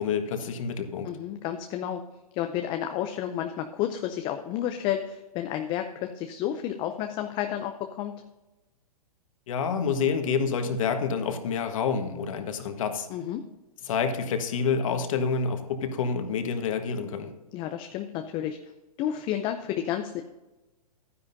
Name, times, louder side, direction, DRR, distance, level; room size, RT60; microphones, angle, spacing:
voice 1, 0.0-1.1 9.5-13.1 13.8-17.3, left 6 dB, 55° left, 6 dB, 1.5 m, -28 dB
voice 2, 1.0-2.0 2.3-8.2 13.1-13.4 17.5-18.6 19.0-20.2, left 11 dB, 25° left, 6 dB, 0.5 m, -31 dB
12.0 x 9.9 x 2.7 m, 1.1 s
hypercardioid pair, 135°, 20 cm